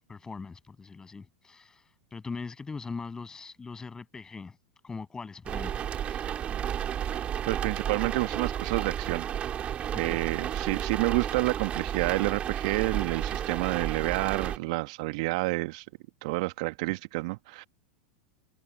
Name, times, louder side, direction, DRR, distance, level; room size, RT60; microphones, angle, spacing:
voice 1, 0.1-1.8 2.1-4.6 4.8-6.2 9.9-10.2, left 4 dB, 15° left, 7.7 m, -41 dB
sound 1, 5.5-14.6, right 9 dB, 30° right, 2.6 m, -32 dB
voice 2, 7.5-9.3 9.9-15.9 16.2-17.6, right 24 dB, 55° right, 1.9 m, -29 dB
figure-of-eight pair, 90°, 4 cm